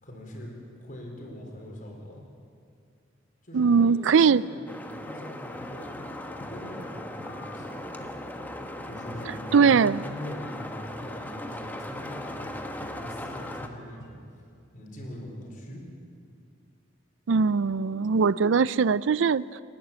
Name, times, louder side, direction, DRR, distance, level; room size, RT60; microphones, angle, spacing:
voice 1, 0.0-2.2 3.4-5.9 6.2-7.8 8.8-14.2 14.7-15.8, left 1 dB, 45° left, 0 dB, 4.4 m, -42 dB
voice 2, 3.5-4.4 9.5-10.0 17.3-19.6, right 5 dB, 80° right, 19 dB, 0.4 m, -21 dB
sound 1, 4.7-13.7, left 1 dB, 10° left, 1.1 m, -38 dB
sound 2, 5.5-14.1, left 1 dB, 75° left, 3.7 m, -48 dB
27.5 x 11.5 x 8.9 m, 2.3 s
head